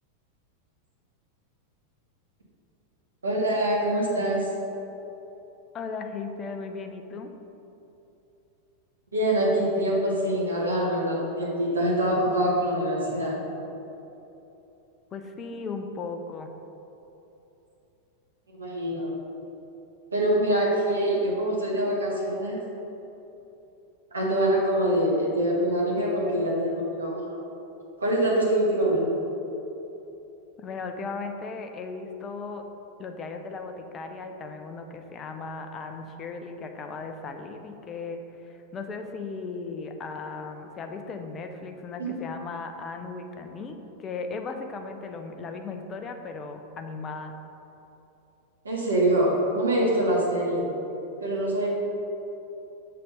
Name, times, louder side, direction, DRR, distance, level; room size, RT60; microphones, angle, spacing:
voice 1, 3.2-4.5 9.1-13.4 18.5-19.1 20.1-22.6 24.1-27.3 28.0-29.1 42.0-42.1 48.6-50.7 51.2-51.7, right 1 dB, 75° right, -4 dB, 1.6 m, -24 dB
voice 2, 5.7-7.3 15.1-16.5 30.6-32.6 33.0-47.3, left 4 dB, 25° left, 5 dB, 0.6 m, -37 dB
6.5 x 4.1 x 5.4 m, 3.0 s
figure-of-eight pair, 90°, 0 cm